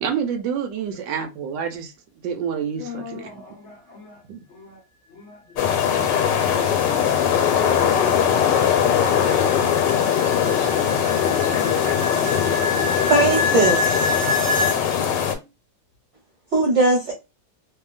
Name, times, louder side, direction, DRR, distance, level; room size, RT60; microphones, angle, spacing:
voice 1, 0.0-1.9 2.2-3.3 4.3-4.4, right 7 dB, 85° right, 1.3 m, -28 dB
voice 2, 2.7-4.8 5.1-6.5, left 6 dB, 55° left, 0.8 m, -44 dB
sound 1, 5.6-15.3, left 8 dB, 80° left, 1.3 m, -20 dB
sound 2, 9.4-14.8, left 2 dB, 70° right, 0.5 m, -27 dB
voice 3, 13.0-14.1 16.5-17.1, right 2 dB, 50° right, 1.0 m, -19 dB
2.8 x 2.7 x 2.3 m
omnidirectional pair, 2.0 m